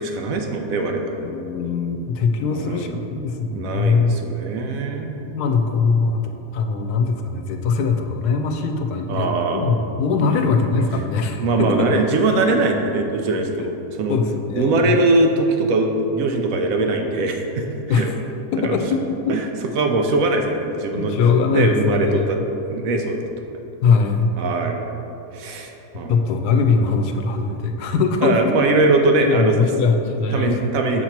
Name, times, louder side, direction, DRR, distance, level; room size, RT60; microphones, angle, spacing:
voice 1, 0.0-1.3 2.4-3.0 3.5-5.2 9.1-9.8 10.2-10.5 11.4-14.2 14.5-18.1 18.6-18.8 19.3-19.5 19.7-21.2 21.5-22.4 22.7-23.2 24.4-24.8 25.3-26.3 28.2-29.6 30.3-31.0, right 2 dB, 70° right, 3 dB, 1.0 m, -21 dB
voice 2, 1.2-4.1 5.2-11.9 12.5-12.6 14.1-14.9 17.9-18.1 18.5-19.4 20.9-22.3 23.8-24.3 25.5-25.6 26.1-28.5 29.2-30.7, left 5 dB, 90° left, 5 dB, 1.1 m, -21 dB
6.5 x 2.9 x 5.7 m, 2.9 s
omnidirectional pair, 1.6 m